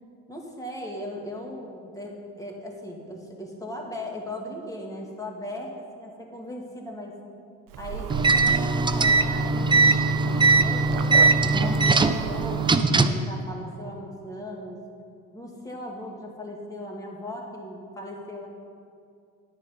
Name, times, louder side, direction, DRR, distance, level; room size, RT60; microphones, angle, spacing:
voice 1, 0.3-7.2 7.8-10.2 10.6-14.8 15.3-18.5, left 1 dB, 10° left, -1 dB, 2.4 m, -38 dB
sound 1, 7.7-12.8, right 9 dB, 65° right, 0.7 m, -34 dB
sound 2, 8.1-13.3, right 3 dB, 15° right, 0.5 m, -20 dB
9.8 x 9.7 x 5.4 m, 2.4 s
supercardioid pair, 85°, 36 cm